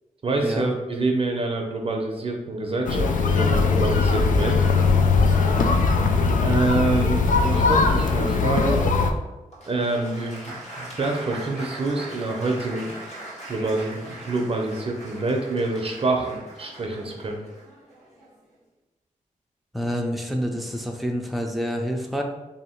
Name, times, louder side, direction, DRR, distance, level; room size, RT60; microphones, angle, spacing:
voice 1, 0.2-4.7 6.4-8.9 9.7-12.9 13.5-17.4, right 2 dB, 45° right, 2 dB, 0.6 m, -26 dB
sound 1, 2.9-9.1, left 4 dB, 75° left, 0.4 m, -20 dB
Applause, 9.5-18.5, right 1 dB, 55° left, 1.2 m, -40 dB
voice 2, 19.7-22.2, equal, ahead, 1 dB, 0.5 m, -28 dB
2.9 x 2.8 x 4.3 m, 1.1 s
wide cardioid pair, 85°, 14 cm